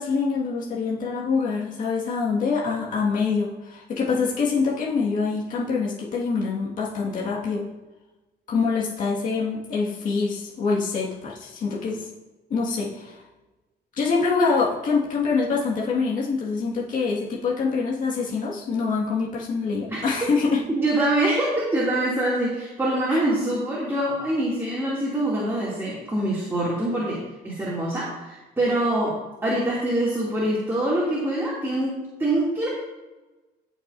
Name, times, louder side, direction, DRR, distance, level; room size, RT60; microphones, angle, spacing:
voice 1, 0.0-7.7 8.5-12.1 12.5-13.2 14.0-20.6 23.1-23.2, left 4 dB, 50° left, -5 dB, 2.0 m, -25 dB
voice 2, 19.9-20.3 20.7-29.1 29.4-32.7, right 1 dB, 15° right, -7 dB, 2.7 m, -25 dB
17.0 x 6.2 x 2.7 m, 1.1 s
cardioid pair, 110°, 17 cm